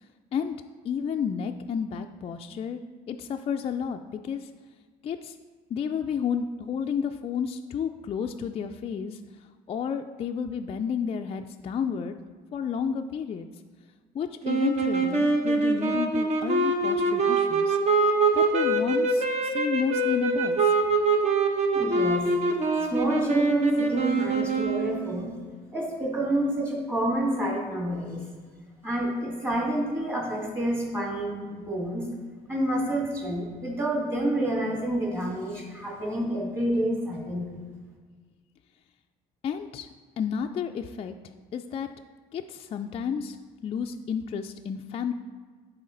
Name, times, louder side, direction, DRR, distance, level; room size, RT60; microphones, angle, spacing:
voice 1, 0.8-2.8 3.1-4.5 5.0-5.4 5.7-9.2 9.7-12.2 12.5-13.5 14.1-17.8 18.3-20.7 39.4-39.9 40.2-41.9 42.3-43.4 43.6-45.1, left 7 dB, 35° left, 5 dB, 0.3 m, -31 dB
sound 1, 14.4-25.2, right 3 dB, 40° right, 1.0 m, -24 dB
voice 2, 21.7-22.2 22.7-25.3 25.7-28.2 28.8-32.1 32.5-37.6, right 1 dB, 15° right, -3 dB, 2.3 m, -28 dB
10.5 x 4.2 x 3.9 m, 1.5 s
cardioid pair, 110°, 17 cm